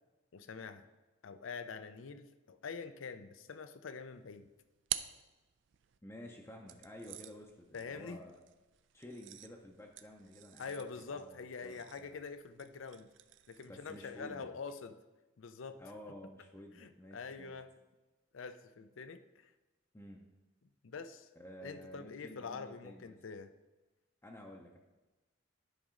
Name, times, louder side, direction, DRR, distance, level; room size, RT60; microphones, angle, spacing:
voice 1, 0.3-0.9 1.2-4.5 7.7-8.2 10.6-13.1 13.5-15.0 15.4-15.8 16.8-17.7 18.3-19.5 20.8-21.3 21.6-23.5, left 5 dB, 80° left, 10 dB, 0.5 m, -45 dB
sound 1, 4.2-6.0 6.7-14.3, right 13 dB, 65° right, 0.4 m, -48 dB
voice 2, 6.0-8.4 8.9-12.2 13.6-14.5 15.8-17.5 19.9-20.2 21.3-23.2 24.2-24.8, equal, 15° left, 0 dB, 0.6 m, -52 dB
10.0 x 5.3 x 3.7 m, 1.1 s
head